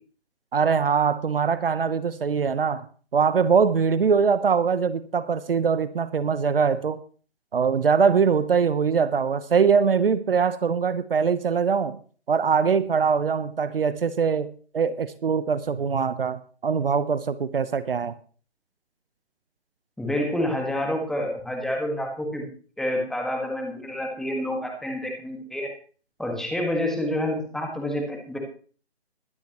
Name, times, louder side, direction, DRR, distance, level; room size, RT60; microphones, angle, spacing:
voice 1, 0.5-2.8 3.1-7.0 7.5-12.0 12.3-14.5 14.7-18.1, right 6 dB, 55° right, 14 dB, 1.0 m, -22 dB
voice 2, 20.0-22.5 22.8-25.7 26.2-28.4, left 1 dB, ahead, 1 dB, 1.8 m, -28 dB
22.0 x 9.7 x 3.1 m, 0.40 s
figure-of-eight pair, 145°, 33 cm